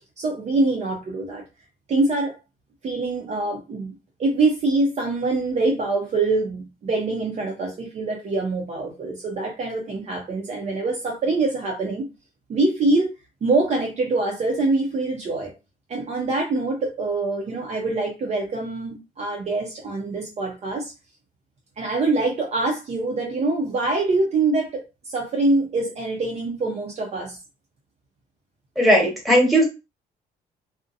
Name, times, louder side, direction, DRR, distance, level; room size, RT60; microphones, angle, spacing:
voice 1, 0.2-1.4 1.9-2.4 2.8-3.9 4.2-12.1 12.5-13.1 13.4-15.5 15.9-20.9 21.8-27.4, right 3 dB, 40° right, 0.6 m, -24 dB
voice 2, 28.8-29.6, equal, ahead, 1.3 m, -17 dB
2.6 x 2.1 x 2.5 m
cardioid pair, 110°, 17 cm